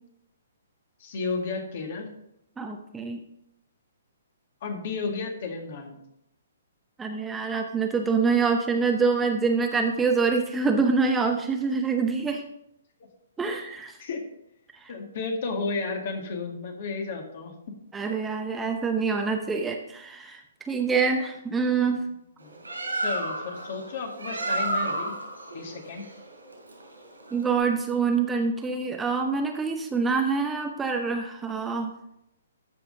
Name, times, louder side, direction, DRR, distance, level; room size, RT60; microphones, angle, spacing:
voice 1, 1.0-2.1 4.6-6.0 14.0-14.2 14.9-17.6 21.9-22.0 22.4-22.6 22.9-25.1 25.5-26.0, left 4 dB, 50° left, 3 dB, 2.0 m, -33 dB
voice 2, 2.6-3.2 7.0-12.4 13.4-13.9 17.9-20.4 20.7-22.0 27.3-31.9, right 5 dB, 10° right, 3 dB, 0.8 m, -25 dB
Bird, 22.4-27.6, right 2 dB, 90° right, 4.1 m, -32 dB
13.0 x 5.5 x 3.8 m, 0.80 s
figure-of-eight pair, 130°, 0 cm